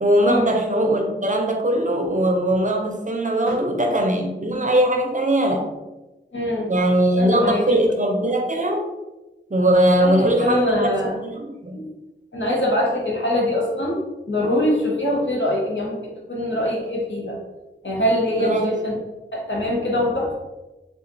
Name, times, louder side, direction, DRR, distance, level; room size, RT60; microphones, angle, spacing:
voice 1, 0.0-5.7 6.7-8.8 9.5-11.8 18.4-18.7, right 1 dB, 40° right, 2 dB, 0.6 m, -20 dB
voice 2, 6.3-6.7 7.2-7.8 10.0-11.2 11.7-11.9 12.3-14.0 14.3-17.4 17.8-18.9 19.3-20.3, left 1 dB, 75° left, -3 dB, 1.0 m, -23 dB
3.8 x 2.4 x 2.7 m, 1.1 s
wide cardioid pair, 45°, 20 cm